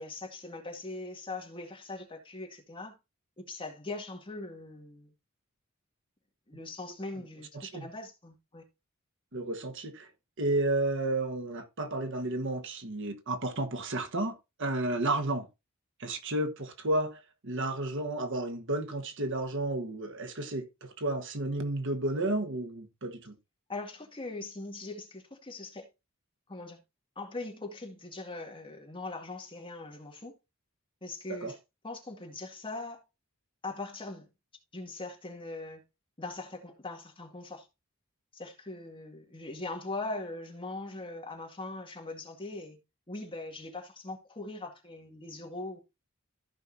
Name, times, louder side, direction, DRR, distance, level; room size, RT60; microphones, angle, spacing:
voice 1, 0.0-2.9 3.4-5.1 6.5-8.6 23.7-25.9 26.5-26.8 27.2-30.3 31.0-31.6 31.8-33.0 33.6-34.3 34.7-35.8 36.2-37.7 38.3-42.8 43.1-45.8, left 2 dB, 25° left, 2.3 m, -41 dB
voice 2, 7.5-7.9 9.3-10.1 10.4-15.5 16.0-23.4 31.3-31.5, right 2 dB, 65° right, 1.4 m, -32 dB
14.5 x 5.5 x 2.7 m
head